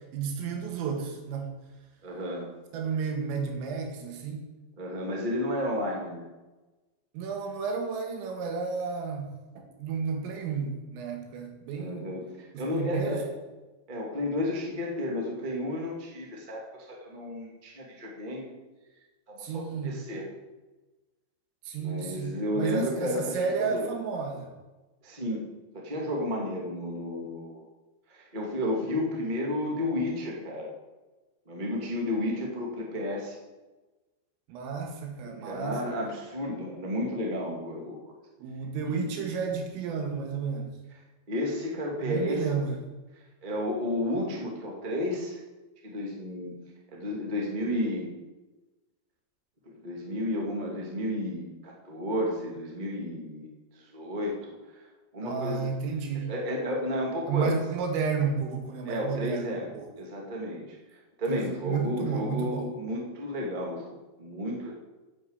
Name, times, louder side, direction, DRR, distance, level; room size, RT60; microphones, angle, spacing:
voice 1, 0.1-1.5 2.7-4.5 7.1-9.3 9.8-12.1 12.5-13.2 19.4-19.9 21.7-24.5 34.5-35.8 38.4-40.8 42.0-42.7 55.2-56.3 57.3-59.9 61.3-62.7, right 5 dB, 90° right, 3 dB, 4.5 m, -32 dB
voice 2, 2.0-2.5 4.8-6.3 11.7-13.3 13.9-18.5 19.3-20.2 21.8-23.9 25.0-25.4 25.7-27.6 28.1-30.7 31.4-33.4 35.2-38.2 38.9-39.0 41.3-42.4 43.4-45.4 45.8-46.5 46.9-48.1 49.6-54.9 55.1-55.7 56.3-57.6 58.8-59.7 60.0-64.7, left 1 dB, 40° right, -1 dB, 0.6 m, -32 dB
10.5 x 7.7 x 8.0 m, 1.2 s
omnidirectional pair, 5.7 m